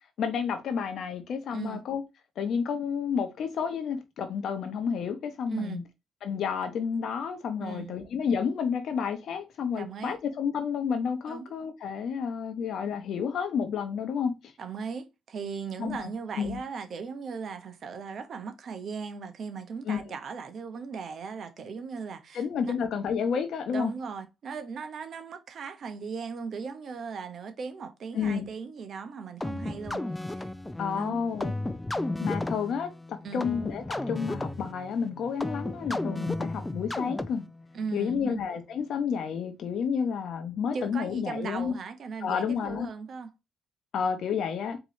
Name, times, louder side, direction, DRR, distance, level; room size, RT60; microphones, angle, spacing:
voice 1, 0.2-2.0 2.4-5.8 6.2-14.4 15.8-16.1 16.4-16.6 19.9-20.0 22.3-23.9 28.1-28.5 30.8-31.5 32.2-37.4 37.9-41.7 42.2-42.9 43.9-44.8, left 6 dB, 70° left, 0.9 m, -30 dB
voice 2, 1.5-1.8 5.5-5.8 7.6-8.0 9.8-10.2 11.3-11.5 14.6-22.7 23.7-30.0 30.3-30.5 30.9-31.2 33.2-33.4 37.7-38.4 40.7-43.3, right 5 dB, 55° right, 0.9 m, -37 dB
sound 1, 29.4-37.6, left 2 dB, 10° left, 0.4 m, -34 dB
4.5 x 3.0 x 3.1 m
cardioid pair, 90°, 0 cm